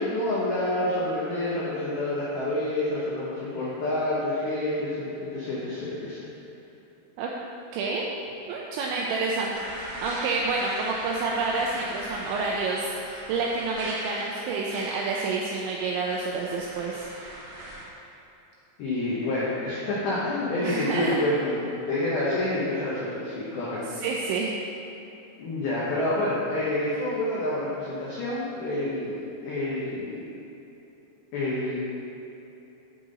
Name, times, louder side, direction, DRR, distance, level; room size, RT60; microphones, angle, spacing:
voice 1, 0.0-6.3 18.8-23.8 25.4-30.3 31.3-31.8, left 1 dB, 85° left, -8 dB, 2.1 m, -28 dB
voice 2, 7.7-8.1 8.5-17.1 20.6-21.2 24.0-24.6, right 3 dB, 85° right, -2 dB, 2.6 m, -29 dB
sound 1, 9.5-17.9, right 1 dB, 60° right, 3.3 m, -39 dB
10.0 x 3.7 x 3.9 m, 3.0 s
omnidirectional pair, 5.7 m